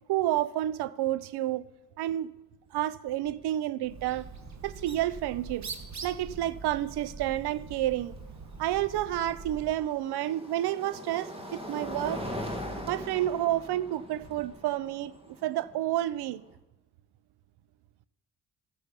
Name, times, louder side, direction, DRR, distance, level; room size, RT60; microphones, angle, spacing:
voice 1, 0.1-1.7 2.0-2.3 2.7-4.3 4.6-5.7 6.0-8.1 8.6-12.2 12.9-16.4, right 13 dB, 80° right, 0.6 m, -30 dB
sound 1, 2.7-2.8 3.1-3.5 5.3-5.4 8.4-16.5, equal, 15° right, 2.2 m, -41 dB
Bird, 3.8-9.8, right 4 dB, 45° right, 1.4 m, -43 dB
13.5 x 9.9 x 5.2 m
supercardioid pair, 60°, 39 cm